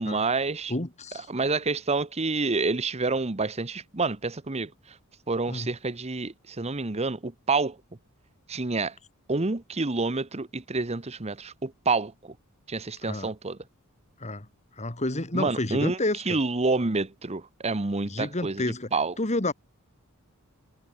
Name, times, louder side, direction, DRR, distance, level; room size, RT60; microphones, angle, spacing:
voice 1, 0.0-0.7 1.3-5.0 5.3-7.8 8.5-8.9 9.3-12.3 12.7-13.6 15.3-16.0 16.3-18.6 18.9-19.1, right 3 dB, 30° right, 1.0 m, -28 dB
voice 2, 0.7-1.3 5.5-5.7 13.0-13.3 14.2-14.5 14.8-16.4 18.0-18.9 19.2-19.5, left 2 dB, 30° left, 2.2 m, -30 dB
head